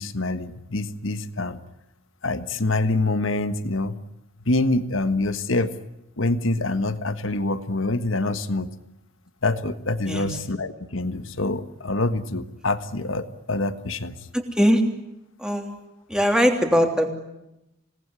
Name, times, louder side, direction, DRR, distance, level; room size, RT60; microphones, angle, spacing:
voice 1, 0.0-1.6 2.2-4.0 4.5-5.7 6.2-8.7 9.4-14.1, left 2 dB, 70° left, 11 dB, 1.5 m, -25 dB
voice 2, 14.3-14.8 15.4-15.8 16.1-17.1, equal, 5° right, 4 dB, 3.1 m, -21 dB
27.0 x 19.0 x 9.8 m, 0.91 s
head